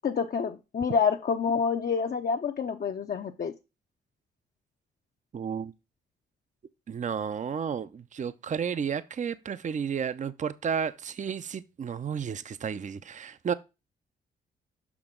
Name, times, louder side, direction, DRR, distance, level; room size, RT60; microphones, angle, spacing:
voice 1, 0.0-3.6, left 6 dB, 50° left, 0.7 m, -28 dB
voice 2, 5.3-5.7 6.9-13.5, right 7 dB, 40° right, 0.6 m, -32 dB
6.0 x 5.9 x 3.7 m
supercardioid pair, 50°, 20 cm